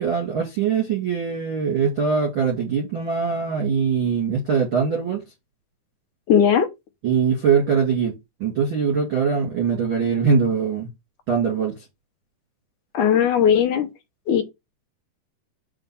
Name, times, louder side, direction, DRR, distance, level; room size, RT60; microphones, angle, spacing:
voice 1, 0.0-5.2 7.0-8.1 8.4-10.9 11.3-11.7, right 6 dB, 40° right, 2.1 m, -22 dB
voice 2, 6.3-6.7 12.9-13.9 14.3-14.4, left 8 dB, 65° left, 2.0 m, -17 dB
5.2 x 5.0 x 5.8 m
omnidirectional pair, 4.9 m